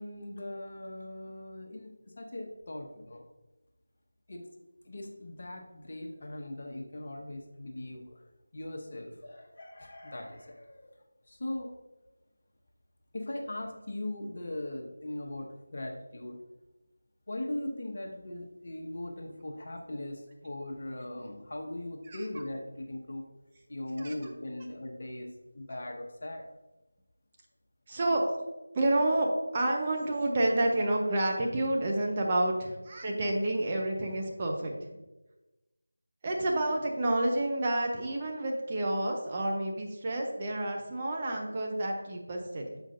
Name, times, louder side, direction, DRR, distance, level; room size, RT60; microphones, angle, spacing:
voice 1, 0.0-3.2 4.3-4.4 4.8-8.2 8.5-11.0 11.3-11.7 13.1-16.4 17.3-23.2 23.7-25.3 25.5-26.5, left 1 dB, 45° left, 2 dB, 0.9 m, -39 dB
voice 2, 27.9-28.3 28.7-34.7 36.2-42.8, right 1 dB, 25° right, 0 dB, 0.7 m, -29 dB
7.5 x 5.0 x 2.6 m, 1.1 s
figure-of-eight pair, 165°, 0 cm